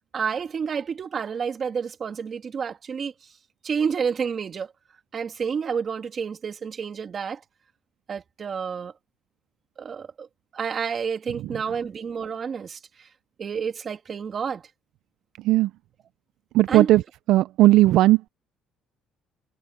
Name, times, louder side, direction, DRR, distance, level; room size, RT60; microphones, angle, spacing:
voice 1, 0.1-3.1 3.6-4.7 5.1-7.4 8.1-8.9 9.8-10.3 10.5-13.1 13.4-14.6 16.7-16.9, right 6 dB, 35° right, 2.2 m, -29 dB
voice 2, 16.5-17.0 17.3-18.3, right 16 dB, 70° right, 0.4 m, -17 dB
cardioid pair, 145°, 0 cm